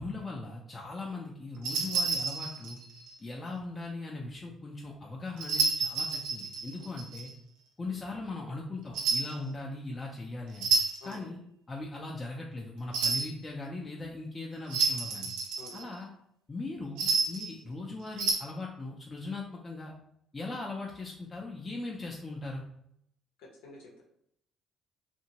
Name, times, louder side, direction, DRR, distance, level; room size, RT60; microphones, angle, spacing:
voice 1, 0.0-2.8 3.2-7.3 7.8-10.7 11.0-11.4 11.7-15.3 15.7-16.1 16.5-19.9 20.3-22.6, left 2 dB, 30° left, -2 dB, 0.5 m, -39 dB
sound 1, 1.6-3.1 5.4-7.3 8.9-9.4 10.5-11.1 12.9-13.3 14.7-15.9 17.0-17.5 18.1-18.3, right 4 dB, 80° right, 0.5 m, -30 dB
voice 2, 23.4-24.0, left 2 dB, 75° left, -2 dB, 0.8 m, -49 dB
2.8 x 2.5 x 2.8 m, 0.72 s
hypercardioid pair, 55°, 0 cm